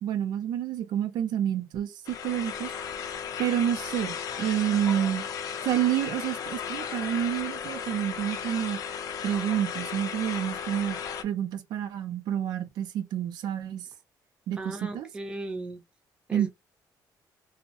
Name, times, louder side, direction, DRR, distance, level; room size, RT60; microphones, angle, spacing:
voice 1, 0.0-2.7 3.4-5.2 5.6-8.8 9.2-13.9 14.5-15.1 16.3-16.5, right 10 dB, 75° right, 0.5 m, -29 dB
sound 1, 2.0-11.2, left 7 dB, 55° left, 0.5 m, -35 dB
voice 2, 14.6-15.8 16.3-16.5, right 2 dB, 15° right, 0.6 m, -36 dB
2.6 x 2.0 x 2.8 m
cardioid pair, 150°, 7 cm